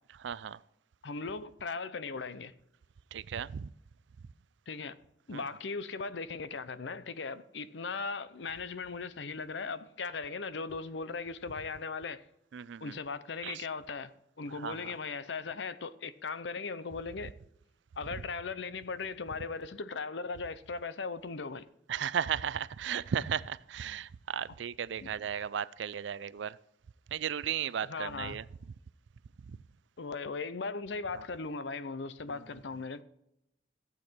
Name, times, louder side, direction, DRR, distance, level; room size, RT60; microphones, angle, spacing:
voice 1, 0.2-0.6 3.1-3.7 5.3-5.4 12.5-13.0 13.4-13.6 14.5-15.0 21.9-26.6 27.1-28.4 29.5-29.6 32.3-32.4, right 8 dB, 80° right, 0.4 m, -35 dB
voice 2, 1.0-2.5 4.7-5.0 5.3-12.3 12.8-14.1 14.4-17.3 18.0-21.7 25.0-25.1 27.8-28.4 30.0-33.0, left 4 dB, 80° left, 0.7 m, -38 dB
15.0 x 8.2 x 4.4 m
head